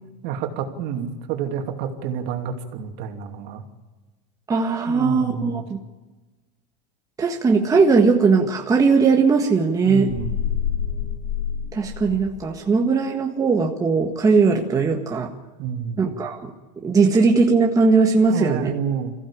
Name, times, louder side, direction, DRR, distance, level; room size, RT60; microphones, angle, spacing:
voice 1, 0.2-3.6 4.9-5.6 9.8-10.4 15.6-16.0 18.3-19.1, right 8 dB, 55° right, 4 dB, 2.8 m, -29 dB
voice 2, 4.5-5.6 7.2-10.1 11.7-15.3 16.0-16.5 16.8-18.7, right 4 dB, 15° right, 1 dB, 1.6 m, -19 dB
sound 1, 10.1-12.5, left 8 dB, 40° left, 6.7 m, -27 dB
22.5 x 15.5 x 8.7 m, 1.2 s
supercardioid pair, 130°, 21 cm